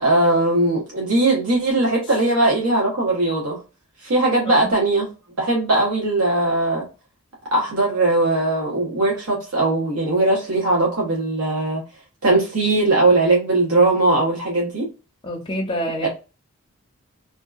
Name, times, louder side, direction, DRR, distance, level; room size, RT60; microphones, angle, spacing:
voice 1, 0.0-3.6 4.0-5.1 5.4-6.8 7.5-11.8 12.2-14.9 16.0-16.1, right 2 dB, 85° right, 0.9 m, -19 dB
voice 2, 15.2-16.1, equal, 25° left, 0.5 m, -27 dB
2.7 x 2.2 x 2.3 m
head